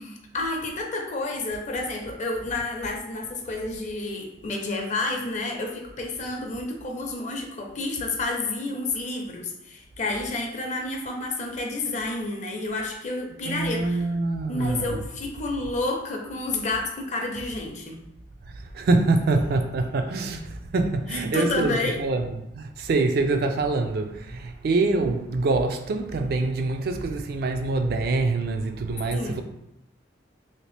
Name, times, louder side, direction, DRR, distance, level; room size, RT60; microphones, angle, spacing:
voice 1, 0.0-14.1 14.5-18.0 21.1-22.0 29.1-29.4, left 2 dB, 40° left, 0.6 m, -30 dB
voice 2, 13.5-14.9 18.7-22.3 22.5-29.4, right 3 dB, 60° right, 0.3 m, -25 dB
2.9 x 2.8 x 3.2 m
head